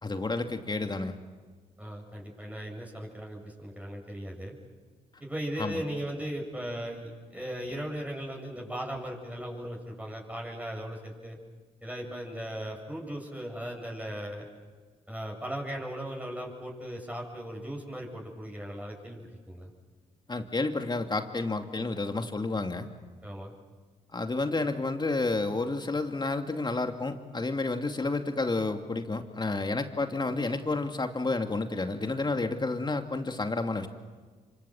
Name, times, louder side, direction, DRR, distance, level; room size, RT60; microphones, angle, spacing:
voice 1, 0.0-1.2 5.6-5.8 20.3-22.9 24.1-33.9, left 3 dB, 30° left, 5 dB, 2.7 m, -30 dB
voice 2, 1.8-4.5 5.2-11.4 11.8-14.5 15.1-19.7 23.2-23.5, equal, 10° right, -1 dB, 8.0 m, -37 dB
26.5 x 25.5 x 7.9 m, 1.5 s
supercardioid pair, 50°, 15 cm